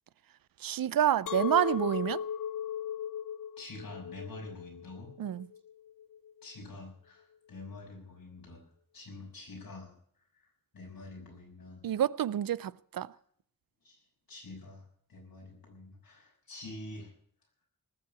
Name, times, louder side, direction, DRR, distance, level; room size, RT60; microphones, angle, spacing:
voice 1, 0.6-2.2 5.2-5.5 11.8-13.1, right 10 dB, 85° right, 0.5 m, -28 dB
Chink clink, 1.3-6.4, left 9 dB, 70° left, 0.5 m, -37 dB
voice 2, 3.6-5.1 6.4-8.6 8.9-9.9 10.4-10.5 10.7-11.8 13.8-14.0 14.3-17.1, left 2 dB, 90° left, 6.3 m, -46 dB
19.5 x 7.6 x 8.3 m
wide cardioid pair, 105°, 34 cm